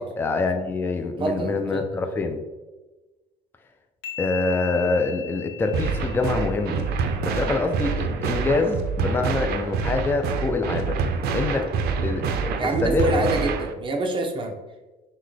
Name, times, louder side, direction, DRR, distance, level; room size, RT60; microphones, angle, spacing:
voice 1, 0.2-2.4 4.2-6.8 7.2-11.0 11.3-11.7 12.0-13.2, left 3 dB, 15° left, 5 dB, 0.4 m, -25 dB
voice 2, 1.2-1.9 12.6-14.6, right 2 dB, 30° right, 3 dB, 0.7 m, -26 dB
sound 1, 4.0-7.6, left 10 dB, 85° left, 0.7 m, -39 dB
sound 2, 5.7-13.7, right 5 dB, 70° right, 0.4 m, -26 dB
5.8 x 2.2 x 3.2 m, 1.2 s
cardioid pair, 110°, 17 cm